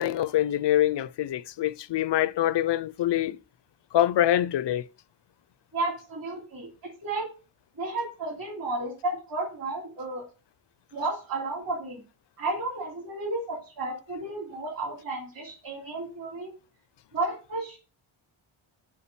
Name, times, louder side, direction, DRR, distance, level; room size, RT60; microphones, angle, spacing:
voice 1, 0.0-3.4 3.9-4.8, left 12 dB, 60° left, 0.5 m, -25 dB
voice 2, 5.7-6.7 7.0-7.3 7.8-10.2 10.9-12.0 12.4-16.5 17.1-17.8, right 2 dB, 45° right, 3.2 m, -32 dB
7.1 x 4.9 x 6.8 m
wide cardioid pair, 175°, 49 cm